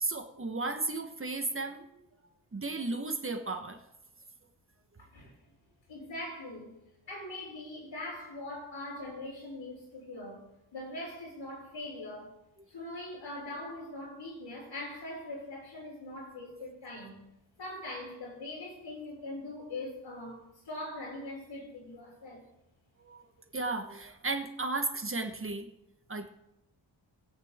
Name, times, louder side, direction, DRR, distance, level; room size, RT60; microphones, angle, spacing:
voice 1, 0.0-2.0 2.5-3.8 23.0-23.2 23.5-25.7 26.1-26.3, right 3 dB, 30° right, 1.2 m, -34 dB
voice 2, 5.0-5.3 5.9-6.8 7.1-12.3 12.7-17.2 17.6-22.4, left 1 dB, 75° left, 5.7 m, -42 dB
20.5 x 8.4 x 3.6 m
wide cardioid pair, 105°, 45 cm